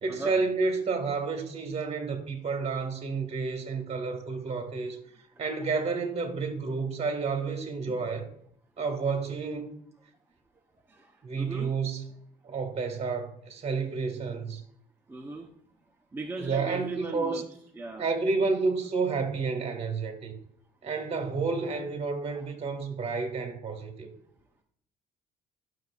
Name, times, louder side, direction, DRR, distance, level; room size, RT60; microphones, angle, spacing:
voice 1, 0.0-5.0 5.4-8.3 8.8-9.7 11.2-12.0 12.4-14.6 16.4-17.4 18.0-20.3 20.8-24.1, right 4 dB, 40° right, 1.8 m, -30 dB
voice 2, 10.9-11.7 15.1-15.5 16.1-17.4 17.8-18.1, right 3 dB, 15° right, 0.8 m, -38 dB
12.5 x 6.7 x 2.4 m
cardioid pair, 110°, 17 cm